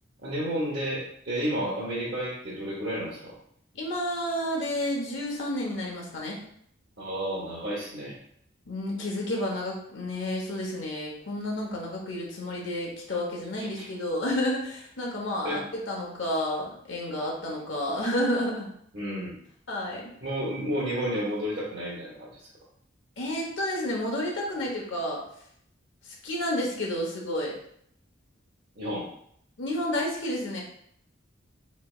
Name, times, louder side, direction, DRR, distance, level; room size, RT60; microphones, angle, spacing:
voice 1, 0.2-3.3 7.0-8.1 13.8-13.9 15.4-15.6 18.9-19.4 20.2-22.4 28.8-29.1, equal, 55° right, -8 dB, 0.9 m, -31 dB
voice 2, 3.7-6.4 8.7-18.7 19.7-20.1 23.2-25.2 26.0-27.6 29.6-30.6, left 1 dB, 75° left, -2 dB, 1.0 m, -30 dB
4.1 x 3.2 x 2.4 m, 0.68 s
head